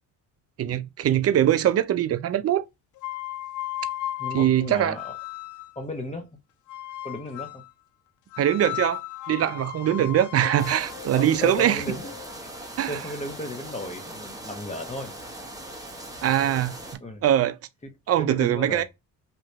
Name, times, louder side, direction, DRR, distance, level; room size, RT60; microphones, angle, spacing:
voice 1, 0.6-2.6 4.3-5.0 8.4-9.0 9.3-11.8 12.8-13.0 16.2-16.7 17.2-17.6 18.1-18.8, right 11 dB, 35° right, 0.5 m, -22 dB
sound 1, 3.0-5.8 6.7-7.7 8.3-12.3, left 14 dB, 50° left, 0.5 m, -36 dB
voice 2, 4.2-5.1 5.7-6.4 7.0-7.6 11.1-12.1 12.4-15.1 17.0-17.2 17.8-17.9 18.2-18.8, left 1 dB, 15° left, 1.2 m, -35 dB
sound 2, 10.6-17.0, right 1 dB, 10° right, 1.1 m, -40 dB
2.8 x 2.5 x 3.3 m
supercardioid pair, 65°, 41 cm